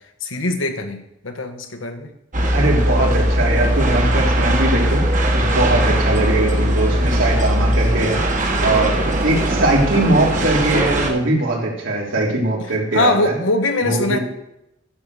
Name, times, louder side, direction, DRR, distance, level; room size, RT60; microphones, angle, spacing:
voice 1, 0.2-2.1 5.4-5.6 8.6-8.9 12.9-14.2, left 2 dB, 85° left, 6 dB, 1.4 m, -22 dB
sound 1, 2.3-11.1, right 1 dB, 40° right, 1.5 m, -19 dB
voice 2, 2.5-5.0 5.4-8.2 8.6-8.9 9.2-13.4 13.8-14.2, right 2 dB, 80° right, -3 dB, 3.5 m, -20 dB
11.5 x 6.3 x 6.9 m, 0.83 s
head